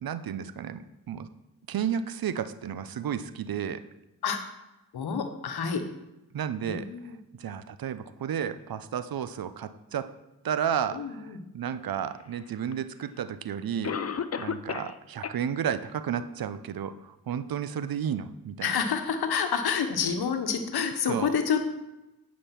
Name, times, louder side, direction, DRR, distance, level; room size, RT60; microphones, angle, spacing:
voice 1, 0.0-1.3 1.7-3.8 6.3-10.1 10.4-14.0 14.4-18.7 21.1-21.3, right 8 dB, 70° right, 13 dB, 0.7 m, -32 dB
voice 2, 4.9-5.8 6.6-7.2 10.9-11.4 18.6-21.7, left 6 dB, 85° left, 7 dB, 1.1 m, -28 dB
Cough, 12.7-12.8 13.8-15.0 15.2-15.3 15.9-16.0 16.5-16.6, left 7 dB, 40° left, 0.7 m, -32 dB
9.9 x 5.4 x 5.9 m, 0.96 s
supercardioid pair, 45°, 37 cm